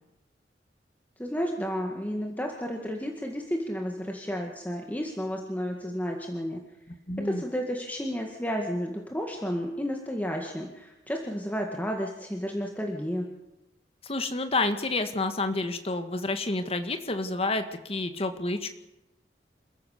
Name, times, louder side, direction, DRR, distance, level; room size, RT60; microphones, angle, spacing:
voice 1, 1.2-6.6 7.2-13.2, equal, 10° left, 1 dB, 2.0 m, -32 dB
voice 2, 7.1-7.4 14.0-18.7, left 2 dB, 35° left, 8 dB, 1.8 m, -29 dB
27.5 x 15.0 x 6.7 m, 0.94 s
head